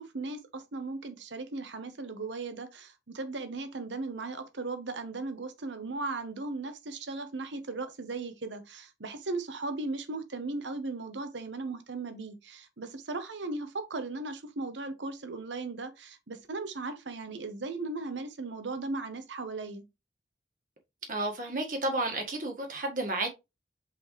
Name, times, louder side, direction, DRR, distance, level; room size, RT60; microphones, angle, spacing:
voice 1, 0.0-19.8, right 3 dB, 90° right, 1.0 m, -37 dB
voice 2, 21.1-23.3, right 2 dB, 45° right, 1.6 m, -31 dB
6.2 x 4.9 x 3.2 m
head